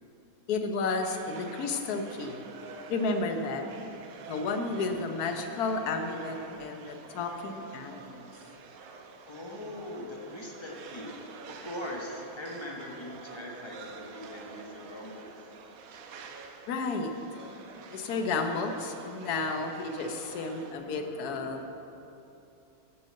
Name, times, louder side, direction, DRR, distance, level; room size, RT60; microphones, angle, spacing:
voice 1, 0.5-2.4 2.9-3.7 4.3-8.3 16.7-17.5 17.9-21.7, left 3 dB, 60° left, 5 dB, 1.1 m, -32 dB
sound 1, 1.0-20.7, right 4 dB, 85° right, 1.5 m, -48 dB
voice 2, 9.3-11.2 11.5-15.3, left 1 dB, 25° left, -1 dB, 0.6 m, -41 dB
7.8 x 7.4 x 7.5 m, 2.9 s
omnidirectional pair, 2.2 m